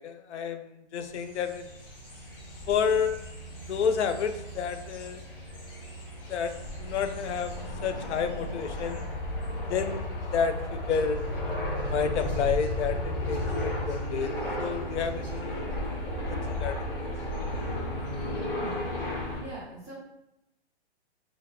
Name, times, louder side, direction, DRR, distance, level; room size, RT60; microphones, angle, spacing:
voice 1, 0.0-1.7 2.7-3.2 3.6-5.2 6.3-7.6 7.8-9.0 9.7-11.2 11.9-14.3 14.6-15.6 16.3-16.8, left 6 dB, 90° left, 9 dB, 0.5 m, -30 dB
sound 1, 1.1-19.4, left 1 dB, 55° left, 1.0 m, -34 dB
voice 2, 18.5-18.8 19.4-19.9, right 1 dB, 10° left, -16 dB, 0.6 m, -42 dB
2.8 x 2.8 x 3.4 m, 0.87 s
hypercardioid pair, 170°, 33 cm